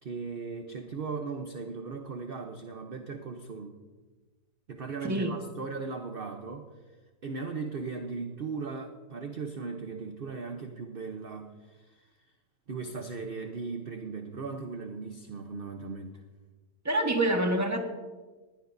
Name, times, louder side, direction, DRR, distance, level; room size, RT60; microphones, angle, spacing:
voice 1, 0.0-3.8 4.7-6.7 7.2-12.1 12.7-16.2, right 4 dB, 45° right, 4 dB, 0.7 m, -38 dB
voice 2, 5.0-5.3 16.8-17.8, right 1 dB, 10° right, 3 dB, 1.2 m, -26 dB
20.0 x 15.5 x 2.7 m, 1.3 s
omnidirectional pair, 2.0 m